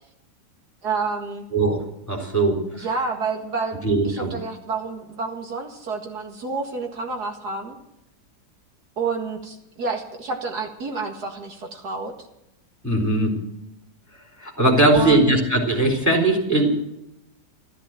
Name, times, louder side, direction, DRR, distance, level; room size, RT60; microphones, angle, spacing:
voice 1, 0.8-1.4 2.7-7.8 9.0-12.1 14.9-15.3, right 4 dB, 70° right, 3 dB, 2.4 m, -29 dB
voice 2, 2.1-2.6 3.8-4.3 12.8-13.3 14.4-16.7, right 2 dB, 10° left, 0 dB, 3.6 m, -19 dB
13.5 x 13.5 x 7.5 m, 0.85 s
omnidirectional pair, 1.8 m